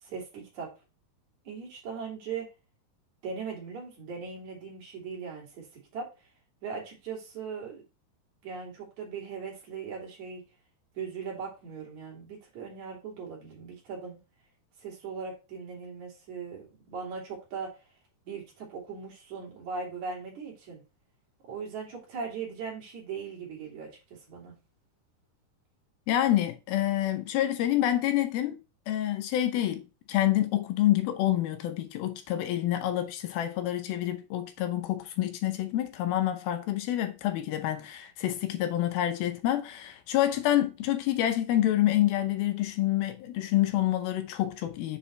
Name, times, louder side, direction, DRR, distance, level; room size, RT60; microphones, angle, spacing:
voice 1, 0.0-0.7 1.5-2.5 3.2-5.7 5.9-6.1 6.6-7.8 8.4-10.4 11.0-14.2 14.8-17.8 18.3-20.8 21.4-23.9 24.3-24.6, right 5 dB, 50° right, 4.0 m, -39 dB
voice 2, 26.1-28.6 28.9-29.8 30.1-45.0, left 13 dB, 80° left, 2.4 m, -27 dB
7.5 x 5.4 x 3.1 m
omnidirectional pair, 4.6 m